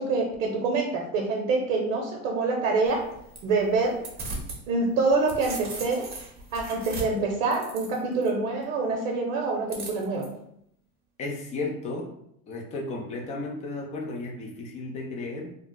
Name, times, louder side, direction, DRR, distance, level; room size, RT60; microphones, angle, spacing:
voice 1, 0.0-3.0 3.4-4.0 4.7-6.1 6.5-10.3, right 3 dB, 75° right, 0 dB, 0.7 m, -26 dB
sound 1, 2.9-4.6 5.0-8.3 9.7-10.3, right 2 dB, 25° right, 0.7 m, -38 dB
voice 2, 11.2-12.1 12.5-15.5, left 2 dB, 20° left, 1 dB, 0.3 m, -34 dB
2.3 x 2.0 x 3.8 m, 0.73 s
supercardioid pair, 115°, 42 cm